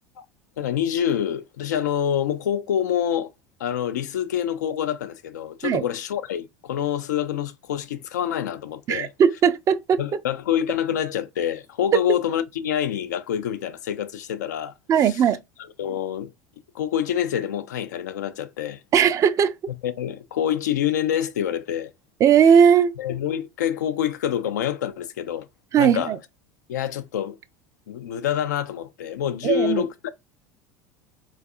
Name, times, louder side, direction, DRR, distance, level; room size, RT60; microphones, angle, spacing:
voice 1, 0.6-3.3 3.6-9.1 10.0-14.7 15.0-15.2 15.8-16.3 16.7-18.8 19.8-21.9 23.0-25.5 25.8-26.1 26.7-27.4 27.9-30.1, left 10 dB, 70° left, 0.4 m, -26 dB
voice 2, 8.9-10.0 14.9-15.4 18.9-19.5 22.2-22.9 25.7-26.2 29.4-29.8, right 8 dB, 35° right, 0.4 m, -18 dB
3.9 x 2.4 x 2.4 m
figure-of-eight pair, 75°, 10 cm